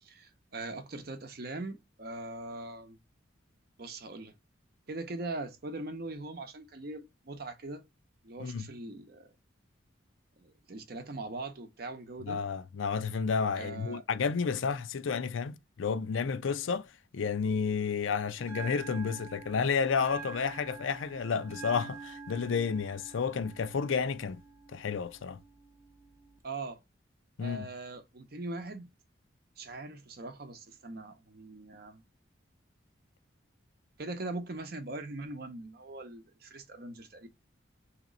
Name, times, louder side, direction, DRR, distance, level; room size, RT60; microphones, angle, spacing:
voice 1, 0.0-3.0 3.8-4.3 4.9-7.8 8.2-9.3 10.4-12.4 13.5-14.0 26.4-26.8 27.4-28.9 29.6-32.0 34.0-37.3, right 2 dB, 50° right, 0.7 m, -41 dB
voice 2, 12.2-24.4 24.7-25.4 27.4-27.7, left 5 dB, 80° left, 0.5 m, -31 dB
Bell, 18.4-26.4, right 6 dB, 15° right, 0.5 m, -47 dB
3.0 x 2.9 x 3.8 m
head